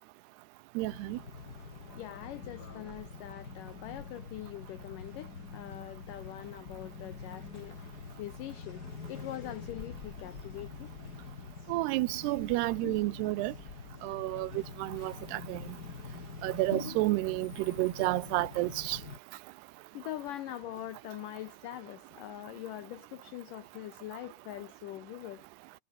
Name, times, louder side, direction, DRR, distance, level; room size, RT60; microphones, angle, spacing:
sound 1, 0.8-19.2, left 5 dB, 30° left, 2.2 m, -46 dB
voice 1, 0.8-1.2 11.7-13.5 14.0-15.6 16.4-19.0, right 20 dB, 80° right, 2.7 m, -31 dB
voice 2, 1.9-7.8 8.2-8.8 9.1-10.9 19.9-25.5, left 13 dB, 80° left, 1.9 m, -43 dB
sound 2, 12.8-13.7 16.7-17.6, left 2 dB, 10° left, 3.8 m, -42 dB
omnidirectional pair, 4.8 m